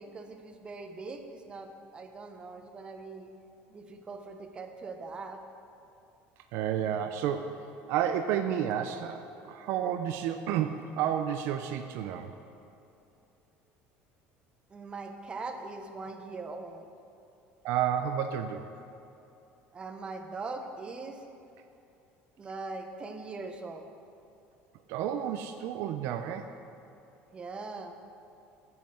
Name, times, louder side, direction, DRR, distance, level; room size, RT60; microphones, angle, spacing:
voice 1, 0.0-3.3 3.7-5.4 14.7-16.9 19.7-21.2 22.4-23.9 27.3-27.9, right 3 dB, 20° right, 5 dB, 0.9 m, -41 dB
voice 2, 6.5-12.3 17.6-18.7 24.9-26.5, right 9 dB, 65° right, 7 dB, 0.6 m, -31 dB
10.0 x 7.6 x 7.6 m, 2.7 s
cardioid pair, 150°, 5 cm